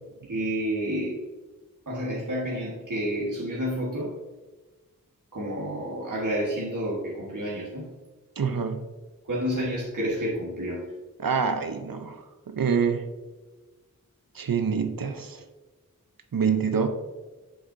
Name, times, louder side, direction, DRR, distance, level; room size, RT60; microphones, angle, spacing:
voice 1, 0.3-1.2 1.8-4.1 5.3-7.9 9.2-10.9, equal, 65° right, -5 dB, 1.5 m, -30 dB
voice 2, 8.4-8.8 11.2-13.1 14.3-15.4 16.3-16.9, right 6 dB, 80° right, 8 dB, 0.7 m, -26 dB
7.7 x 6.4 x 2.7 m, 1.2 s
wide cardioid pair, 50°, 34 cm